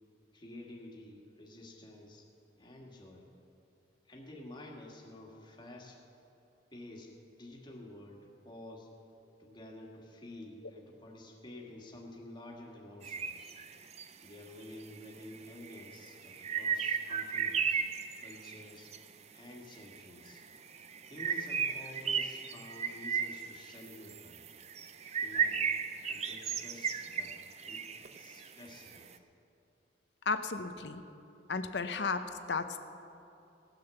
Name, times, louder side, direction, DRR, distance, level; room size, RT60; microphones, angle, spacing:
voice 1, 0.3-2.3 2.6-3.3 4.1-6.0 6.7-8.9 9.4-13.5 14.2-17.8 18.2-18.9 19.3-20.4 21.1-24.5 25.2-25.6 26.1-29.2, left 1 dB, 25° left, -1 dB, 1.8 m, -50 dB
sound 1, 13.0-14.0 15.0-15.1 15.3-19.0 19.8-20.0 20.3-29.0, right 6 dB, 35° right, 0.5 m, -35 dB
voice 2, 30.3-31.0 31.5-32.8, left 4 dB, 65° left, 9 dB, 0.7 m, -34 dB
17.5 x 6.7 x 6.9 m, 2.8 s
head